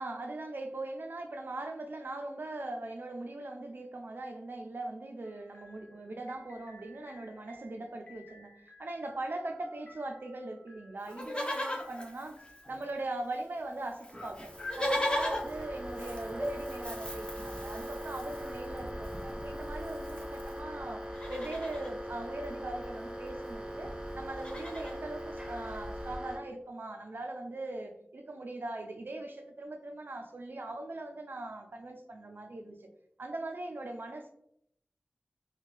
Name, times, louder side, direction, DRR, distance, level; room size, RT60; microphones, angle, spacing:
voice 1, 0.0-8.5 8.8-12.4 12.7-32.9 33.2-34.3, right 2 dB, 75° right, 4 dB, 0.4 m, -40 dB
sound 1, 5.2-13.1, left 1 dB, 60° left, 0.8 m, -59 dB
Livestock farm animals working animals, 11.0-13.1 13.3-13.4 13.6-20.6 21.0-21.9 23.2-23.3 23.4-23.7 24.1-25.0 25.6-25.7, left 1 dB, 30° left, 0.6 m, -38 dB
sound 2, 14.2-26.4, equal, 25° right, 0.5 m, -40 dB
2.5 x 2.2 x 3.2 m, 0.73 s
wide cardioid pair, 45°, 3 cm